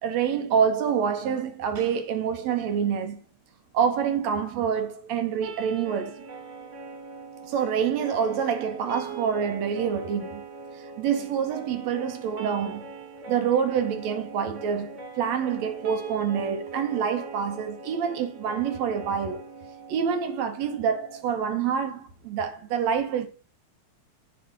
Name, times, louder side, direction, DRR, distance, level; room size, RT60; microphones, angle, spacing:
voice 1, 0.0-3.2 3.7-6.2 7.5-10.4 10.7-12.9 13.3-19.4 19.9-23.3, right 7 dB, 70° right, 1.9 m, -27 dB
sound 1, 5.4-21.5, right 4 dB, 55° right, 1.6 m, -41 dB
8.7 x 5.4 x 3.7 m
omnidirectional pair, 3.4 m